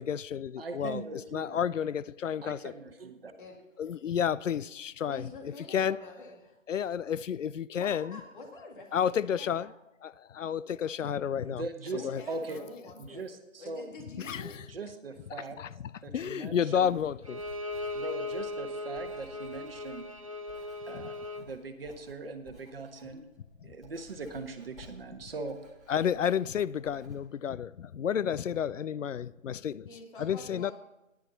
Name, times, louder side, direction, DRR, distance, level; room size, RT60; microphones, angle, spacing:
voice 1, 0.0-1.0 1.3-2.7 3.8-6.0 6.7-8.2 8.9-9.7 10.0-11.7 12.0-12.2 14.2-14.6 15.6-17.4 20.9-21.0 23.6-23.7 25.9-29.9 30.2-30.7, left 8 dB, 70° left, 0.5 m, -31 dB
voice 2, 0.6-1.6 2.4-3.3 11.3-12.6 13.0-13.8 14.7-15.6 16.0-16.9 17.9-20.1 20.9-23.2 23.6-25.6, right 3 dB, 45° right, 1.3 m, -40 dB
voice 3, 5.1-6.6 7.8-9.8 11.9-13.2 13.6-14.6 15.3-15.9 26.8-26.9 29.9-30.7, left 2 dB, 40° left, 2.0 m, -47 dB
Writing, 16.7-27.2, equal, ahead, 1.1 m, -56 dB
Bowed string instrument, 17.2-21.5, left 2 dB, 25° right, 0.6 m, -38 dB
13.5 x 10.5 x 4.0 m
figure-of-eight pair, 155°, 39 cm